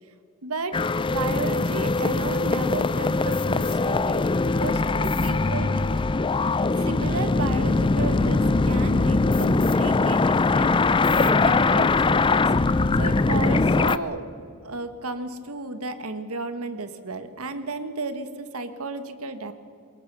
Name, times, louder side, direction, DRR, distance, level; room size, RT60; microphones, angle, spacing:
voice 1, 0.4-0.8 1.1-5.8 6.8-10.8 11.1-12.4 12.6-14.2 14.6-19.5, right 3 dB, 85° right, 10 dB, 1.5 m, -33 dB
sound 1, 0.7-14.0, left 3 dB, 25° left, 0.5 m, -22 dB
23.5 x 20.5 x 6.1 m, 2.5 s
head